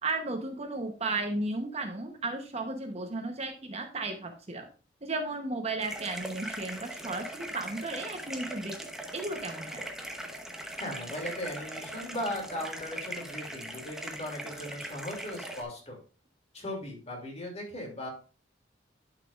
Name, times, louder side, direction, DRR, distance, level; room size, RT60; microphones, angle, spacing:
voice 1, 0.0-4.7 5.0-8.8 9.1-9.9, right 2 dB, 35° right, 5 dB, 1.0 m, -34 dB
sound 1, 5.8-15.6, right 1 dB, 5° right, 1.0 m, -40 dB
voice 2, 10.8-16.0 16.5-18.1, left 1 dB, 35° left, 0 dB, 2.8 m, -38 dB
11.0 x 5.9 x 2.5 m, 0.35 s
head